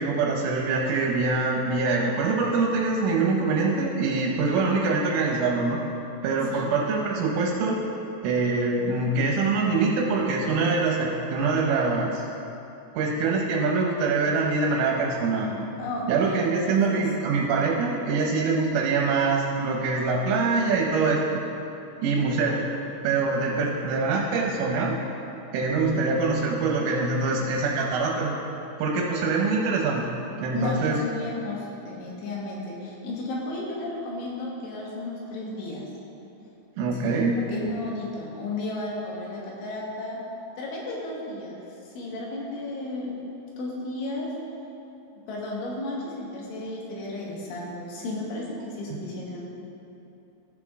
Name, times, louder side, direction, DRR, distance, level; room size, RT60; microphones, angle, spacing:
voice 1, 0.0-5.8 6.2-7.8 8.2-12.3 12.9-15.7 16.1-21.4 22.0-22.6 23.0-25.0 25.5-28.3 28.8-30.1 30.4-31.0 36.8-37.4, right 3 dB, 80° right, -1 dB, 3.3 m, -24 dB
voice 2, 15.8-17.1 30.5-35.8 36.9-40.2 40.6-41.6 42.0-43.2 43.6-44.3 45.3-49.4, left 2 dB, 75° left, -3 dB, 3.9 m, -33 dB
15.0 x 6.0 x 3.6 m, 2.9 s
omnidirectional pair, 5.6 m